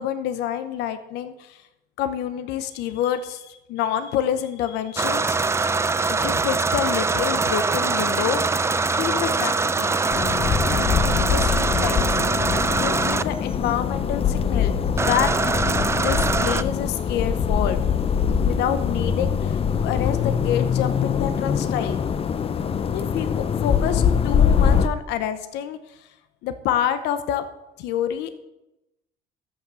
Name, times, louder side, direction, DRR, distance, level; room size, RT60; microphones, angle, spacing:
voice 1, 0.0-1.6 2.0-5.6 6.1-8.4 8.9-10.0 10.7-12.2 12.8-15.5 15.9-17.8 18.4-22.0 22.9-26.1 26.4-27.4 27.8-28.3, left 10 dB, 90° left, 10 dB, 0.9 m, -28 dB
sound 1, 5.0-13.2 15.0-16.6, right 4 dB, 15° right, 0.5 m, -23 dB
sound 2, 10.1-24.9, left 7 dB, 35° left, 0.6 m, -23 dB
13.5 x 5.9 x 6.9 m, 0.92 s
cardioid pair, 110°, 17 cm